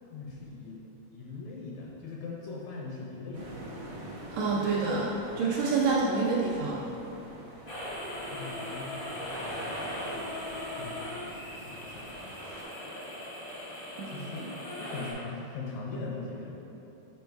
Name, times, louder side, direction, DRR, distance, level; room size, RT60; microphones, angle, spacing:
voice 1, 0.0-0.8 1.1-3.5 8.3-9.4 10.8-12.4 14.1-14.5 14.8-16.5, left 3 dB, 75° left, -3 dB, 1.8 m, -41 dB
sound 1, 3.3-12.6, right 1 dB, 55° right, 1.0 m, -45 dB
voice 2, 4.3-6.8 14.0-14.5, right 4 dB, 75° right, -4 dB, 1.7 m, -28 dB
sound 2, 7.7-15.1, left 1 dB, 50° left, 0.6 m, -39 dB
5.3 x 5.2 x 4.6 m, 3.0 s
omnidirectional pair, 3.7 m